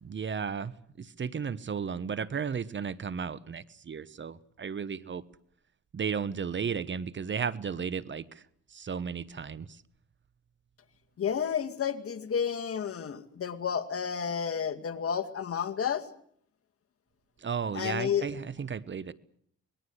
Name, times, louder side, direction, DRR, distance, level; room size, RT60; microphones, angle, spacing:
voice 1, 0.0-5.2 5.9-8.4 8.7-9.8 17.4-19.1, right 6 dB, 40° right, 17 dB, 1.1 m, -34 dB
voice 2, 11.2-16.1 17.7-18.3, left 7 dB, 50° left, 7 dB, 2.2 m, -31 dB
26.0 x 20.5 x 8.0 m, 0.65 s
cardioid pair, 90°, 30 cm